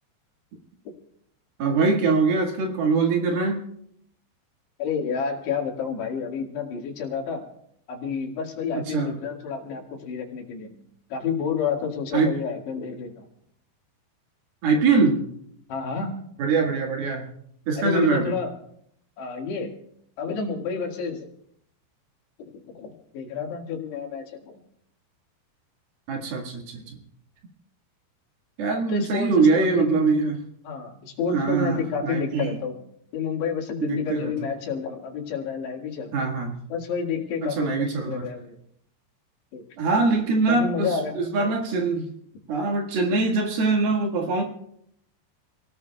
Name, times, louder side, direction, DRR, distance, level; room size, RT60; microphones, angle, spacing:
voice 1, 1.6-3.6 8.9-9.2 12.1-12.3 14.6-15.2 16.4-17.3 17.7-18.3 26.1-27.0 28.6-30.4 31.3-32.5 33.8-34.3 36.1-36.6 37.4-38.2 39.8-42.1 42.5-44.4, right 4 dB, 65° right, 1 dB, 3.5 m, -23 dB
voice 2, 4.8-7.5 7.9-13.3 15.7-16.2 17.8-18.5 19.2-19.8 20.2-21.3 22.7-24.6 28.9-30.0 30.6-32.9 33.1-36.3 36.7-38.6 39.5-39.6 40.5-41.2, left 6 dB, 75° left, 1 dB, 4.1 m, -30 dB
28.5 x 18.5 x 2.3 m, 0.72 s
omnidirectional pair, 5.0 m